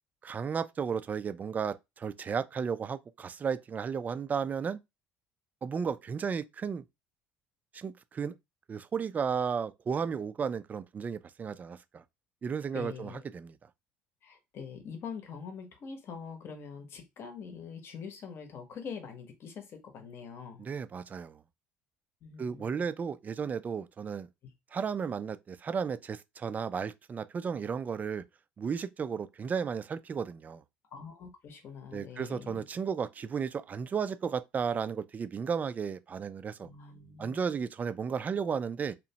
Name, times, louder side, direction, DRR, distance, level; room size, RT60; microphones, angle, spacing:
voice 1, 0.2-4.8 5.6-6.8 7.7-8.3 8.7-12.0 12.4-13.6 20.6-21.4 22.4-24.3 24.7-28.2 28.6-30.6 31.9-36.7 37.2-38.9, right 6 dB, 35° right, 0.3 m, -34 dB
voice 2, 12.7-13.2 14.2-20.6 22.2-22.8 24.4-24.5 30.9-32.6 36.6-37.4, left 6 dB, 50° left, 0.8 m, -44 dB
2.8 x 2.1 x 2.7 m
supercardioid pair, 75°, 5 cm